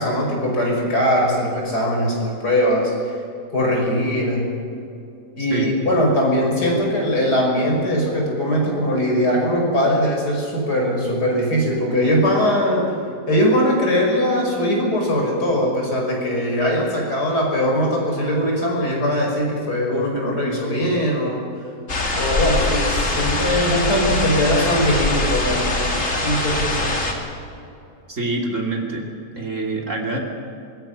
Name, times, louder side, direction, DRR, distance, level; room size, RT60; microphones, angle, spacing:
voice 1, 0.0-3.2 3.5-4.5 5.4-12.9 13.3-21.5 22.1-25.9 26.2-27.0, equal, 75° left, -1 dB, 6.1 m, -20 dB
sound 1, 21.9-27.1, left 2 dB, 50° left, 3.1 m, -22 dB
voice 2, 28.1-29.1 29.4-30.2, right 2 dB, 50° right, 0 dB, 3.4 m, -25 dB
24.5 x 21.5 x 6.0 m, 2.7 s
omnidirectional pair, 1.7 m